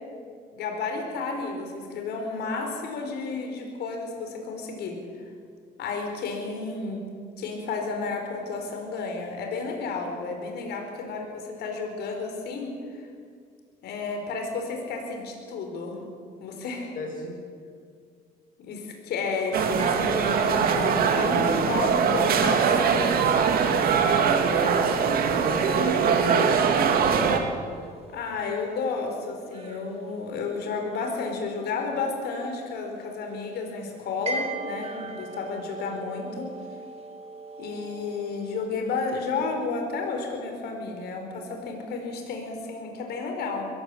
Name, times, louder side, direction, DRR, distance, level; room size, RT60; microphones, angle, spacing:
voice 1, 0.5-5.0 5.8-7.0 7.4-12.7 13.0-13.1 13.8-16.0 16.4-16.9 18.6-23.2 28.1-36.5 37.6-43.7, left 4 dB, 75° left, 3 dB, 4.7 m, -32 dB
voice 2, 17.0-17.3 24.6-24.9 25.4-27.2, left 2 dB, 55° left, 0 dB, 7.9 m, -36 dB
sound 1, 19.2-38.7, right 3 dB, 35° right, 2.9 m, -42 dB
sound 2, 19.5-27.4, right 6 dB, 60° right, 2.4 m, -22 dB
22.0 x 15.5 x 8.1 m, 2.1 s
cardioid pair, 110°, 17 cm